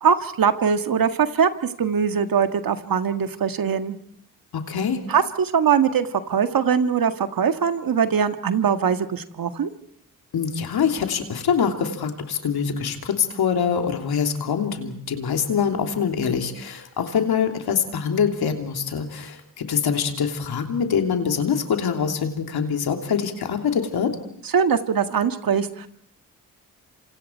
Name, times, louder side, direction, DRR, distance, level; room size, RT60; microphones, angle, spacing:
voice 1, 0.0-1.5 1.8-4.0 5.1-9.7 24.5-25.9, right 7 dB, 65° right, 9 dB, 1.8 m, -21 dB
voice 2, 4.5-5.0 10.3-24.1, left 7 dB, 75° left, 4 dB, 3.1 m, -24 dB
27.5 x 26.5 x 4.6 m, 0.67 s
supercardioid pair, 50°, 38 cm